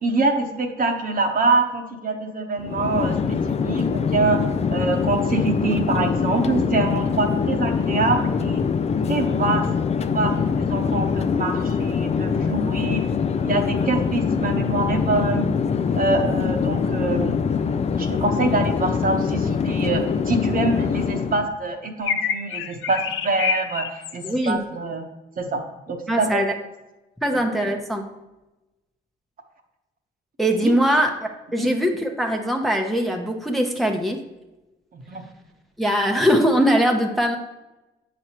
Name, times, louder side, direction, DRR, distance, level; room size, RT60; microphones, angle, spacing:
voice 1, 0.0-3.2 3.6-4.4 4.7-8.6 9.1-9.7 10.0-13.0 13.3-15.4 16.0-17.4 18.0-25.0 25.4-25.6 25.9-26.4 30.6-30.7 31.6-31.7 34.9-35.2, right 3 dB, 45° right, 4 dB, 1.1 m, -25 dB
Chatter / Fixed-wing aircraft airplane, 2.6-21.5, left 6 dB, 35° left, 0.4 m, -23 dB
sound 1, 22.0-24.5, left 7 dB, 80° left, 0.6 m, -27 dB
voice 2, 24.2-24.6 26.1-26.5 27.2-28.0 30.4-34.2 35.8-37.4, equal, ahead, 2 dB, 0.8 m, -21 dB
7.8 x 6.2 x 2.9 m, 1.0 s
cardioid pair, 90°, 20 cm